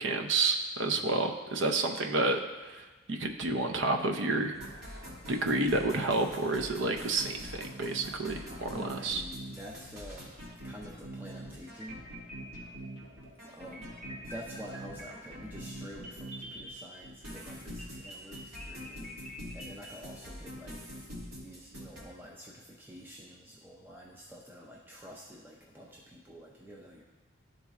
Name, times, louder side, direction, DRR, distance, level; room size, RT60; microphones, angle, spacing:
voice 1, 0.0-4.6 5.3-9.2, right 2 dB, 65° right, 4 dB, 0.6 m, -30 dB
sound 1, 4.5-16.7 17.0-22.0, right 1 dB, 80° right, 1.7 m, -44 dB
voice 2, 8.7-10.3 10.6-12.0 13.5-13.9 14.3-21.0 21.4-27.0, equal, 10° right, -3 dB, 0.4 m, -48 dB
sound 2, 11.6-13.1 13.7-17.3 17.8-19.9, equal, 35° right, 1.2 m, -47 dB
11.5 x 4.0 x 2.4 m, 1.3 s
head